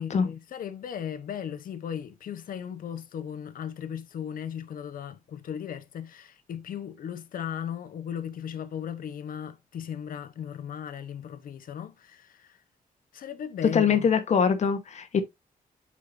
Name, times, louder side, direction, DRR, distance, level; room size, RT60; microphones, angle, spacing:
voice 1, 0.0-12.6 13.1-14.1, left 8 dB, 70° left, 1.0 m, -37 dB
voice 2, 13.7-15.2, left 6 dB, 50° left, 1.1 m, -23 dB
8.5 x 5.6 x 2.6 m
wide cardioid pair, 155°, 15 cm